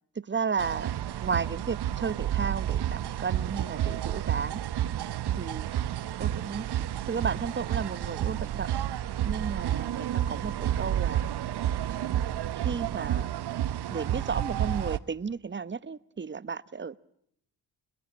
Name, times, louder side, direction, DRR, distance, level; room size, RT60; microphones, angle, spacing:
voice 1, 0.2-0.9 1.2-4.6 5.4-5.7 6.2-6.7 7.1-8.7 9.2-11.2 11.9-12.2 12.6-13.3 13.9-17.0, right 5 dB, 25° right, 18 dB, 1.1 m, -33 dB
sound 1, 0.6-15.0, right 11 dB, 55° right, 1.1 m, -30 dB
27.0 x 21.0 x 8.6 m, 0.72 s
hypercardioid pair, 45°, 48 cm